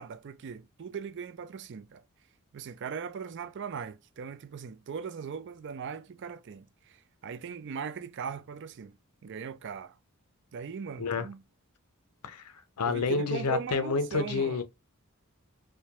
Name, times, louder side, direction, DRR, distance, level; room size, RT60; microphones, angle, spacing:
voice 1, 0.0-2.0 2.5-8.9 9.2-9.9 10.5-11.4 12.9-14.6, right 6 dB, 55° right, 0.4 m, -39 dB
voice 2, 12.2-14.6, left 4 dB, 85° left, 0.6 m, -29 dB
4.8 x 2.2 x 2.9 m
head